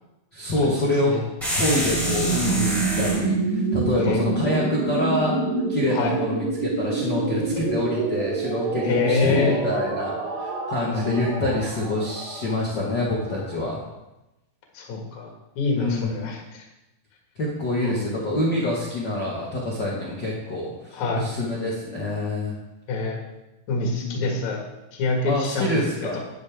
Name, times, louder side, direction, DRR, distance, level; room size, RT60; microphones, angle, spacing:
voice 1, 0.3-1.1 1.5-5.3 5.7-10.1 10.4-13.8 15.8-16.3 17.4-22.6 24.0-24.2 25.2-26.2, left 1 dB, 80° left, -5 dB, 0.9 m, -26 dB
sound 1, 1.4-3.3, equal, ahead, 3.8 m, -26 dB
sound 2, 1.8-13.6, right 4 dB, 70° right, 3.3 m, -27 dB
voice 2, 8.8-9.6 14.7-16.6 17.8-18.2 20.9-21.2 22.9-23.2 23.7-24.6 24.9-26.2, left 4 dB, 50° left, 0 dB, 2.7 m, -26 dB
10.5 x 10.5 x 3.6 m, 0.96 s
omnidirectional pair, 5.0 m